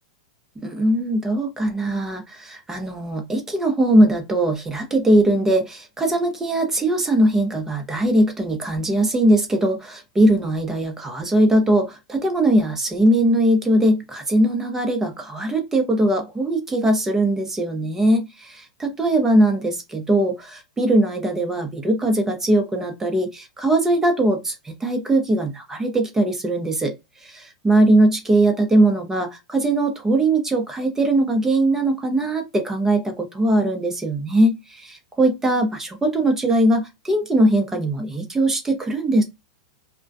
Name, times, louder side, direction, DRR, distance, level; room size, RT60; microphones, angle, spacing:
voice 1, 0.6-26.9 27.2-39.2, right 1 dB, 15° right, 0.7 m, -20 dB
2.2 x 2.2 x 2.6 m
hypercardioid pair, 105°, 3 cm